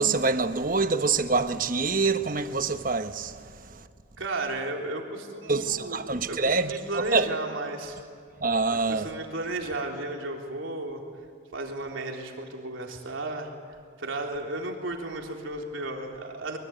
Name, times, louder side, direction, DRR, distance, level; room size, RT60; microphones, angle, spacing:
voice 1, 0.0-3.3 5.5-7.3 8.4-9.1, right 4 dB, 45° right, 1.1 m, -25 dB
voice 2, 4.2-8.0 8.7-11.0 11.5-13.5 14.0-16.6, right 2 dB, 90° right, 3.6 m, -34 dB
23.5 x 23.0 x 9.3 m
head